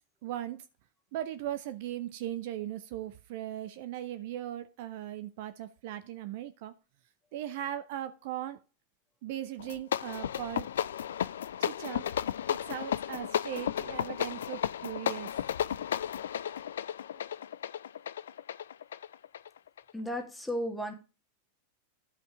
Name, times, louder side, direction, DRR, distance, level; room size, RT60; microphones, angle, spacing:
voice 1, 0.2-0.7 1.1-6.7 7.3-8.6 9.2-10.7 11.6-12.0 12.5-15.3, right 12 dB, 50° right, 0.7 m, -38 dB
sound 1, 9.6-19.9, left 9 dB, 65° left, 0.4 m, -34 dB
voice 2, 19.9-20.9, equal, 5° left, 2.3 m, -34 dB
12.5 x 5.3 x 4.9 m
figure-of-eight pair, 90°, 0 cm